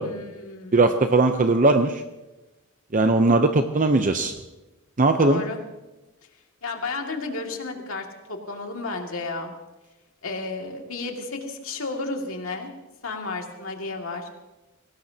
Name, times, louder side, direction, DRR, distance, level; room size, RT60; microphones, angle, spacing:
voice 1, 0.0-0.9 5.2-5.6 6.6-9.5 10.2-12.7 13.0-14.3, left 3 dB, 70° left, 2 dB, 2.3 m, -32 dB
voice 2, 0.7-2.0 2.9-4.3 5.0-5.4, right 2 dB, 40° right, 7 dB, 0.7 m, -19 dB
23.5 x 18.5 x 2.9 m, 1.1 s
head